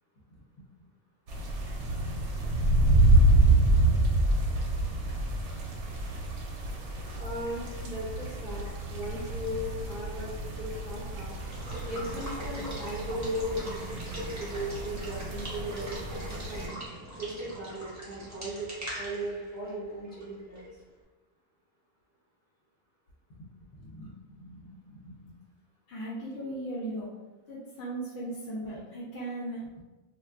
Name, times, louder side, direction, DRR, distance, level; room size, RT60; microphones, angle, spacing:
sound 1, 1.3-16.7, right 1 dB, 75° right, 0.9 m, -27 dB
voice 1, 7.2-11.3 11.9-14.0 14.4-16.7 17.2-20.6, equal, 35° left, -8 dB, 1.2 m, -37 dB
Water / Water tap faucet / Liquid, 11.2-20.8, right 1 dB, 20° right, 0.6 m, -41 dB
voice 2, 23.7-25.4 25.9-27.1 27.5-29.7, right 1 dB, 70° left, -6 dB, 0.9 m, -39 dB
3.4 x 2.5 x 2.2 m, 1.2 s
omnidirectional pair, 1.3 m